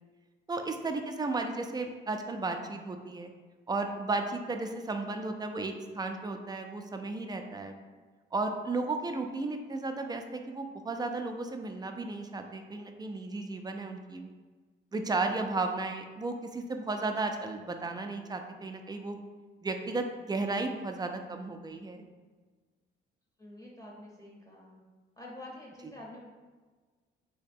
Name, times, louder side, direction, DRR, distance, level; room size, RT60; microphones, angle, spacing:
voice 1, 0.5-3.3 3.7-7.8 8.3-14.3 14.9-19.2 19.6-22.0, right 3 dB, 20° right, 5 dB, 0.4 m, -34 dB
voice 2, 23.4-24.8 25.2-26.2, left 1 dB, 15° left, -3 dB, 0.7 m, -47 dB
3.1 x 2.8 x 3.5 m, 1.4 s
cardioid pair, 90°, 20 cm